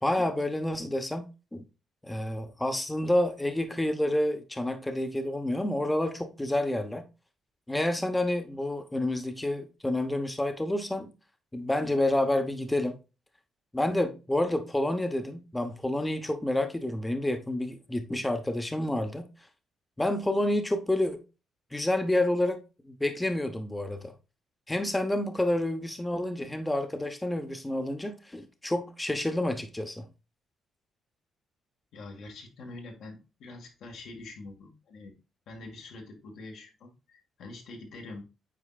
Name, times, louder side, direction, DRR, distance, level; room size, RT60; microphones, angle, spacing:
voice 1, 0.0-1.6 2.0-7.0 7.7-11.1 11.5-12.9 13.7-19.3 20.0-21.2 21.7-22.6 22.8-24.1 24.7-30.1, left 1 dB, 10° left, 1.0 m, -29 dB
voice 2, 31.9-35.1 35.5-38.2, left 2 dB, 75° left, 1.9 m, -45 dB
8.6 x 4.5 x 2.4 m
cardioid pair, 90°, 0 cm